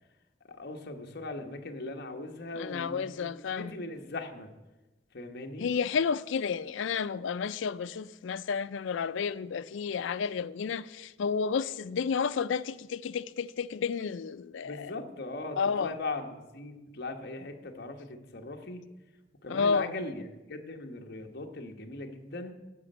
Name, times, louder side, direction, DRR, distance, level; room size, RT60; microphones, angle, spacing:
voice 1, 0.5-4.5 5.1-5.7 14.6-18.8 19.4-22.5, left 2 dB, 55° left, 1.2 m, -39 dB
voice 2, 2.6-3.7 5.6-14.9 15.6-15.9 19.5-19.9, left 6 dB, 75° left, 0.4 m, -31 dB
9.6 x 6.2 x 7.8 m
head